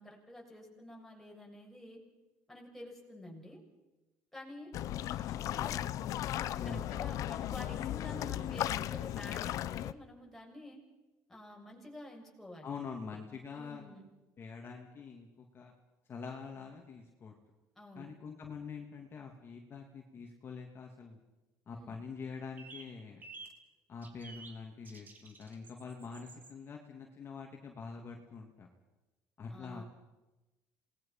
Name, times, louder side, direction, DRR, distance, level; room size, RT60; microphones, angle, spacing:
voice 1, 0.0-2.0 2.5-3.6 4.3-4.7 5.1-5.8 6.6-10.8 11.3-12.7 13.1-13.2 13.5-14.1 17.7-18.1 21.7-21.9 29.5-29.8, left 1 dB, 5° left, -1 dB, 6.8 m, -50 dB
sound 1, 4.7-9.9, left 12 dB, 60° left, 0.8 m, -36 dB
voice 2, 6.5-6.9 12.6-13.8 14.4-15.7 16.1-17.3 17.9-21.2 21.7-23.2 23.9-28.7 29.4-29.8, left 5 dB, 35° left, 1 dB, 2.9 m, -45 dB
sound 2, 22.6-22.9 23.2-23.5 24.0-24.6 24.8-26.5, right 3 dB, 30° right, 3.7 m, -51 dB
27.5 x 20.5 x 5.9 m, 1.1 s
cardioid pair, 125°, 6 cm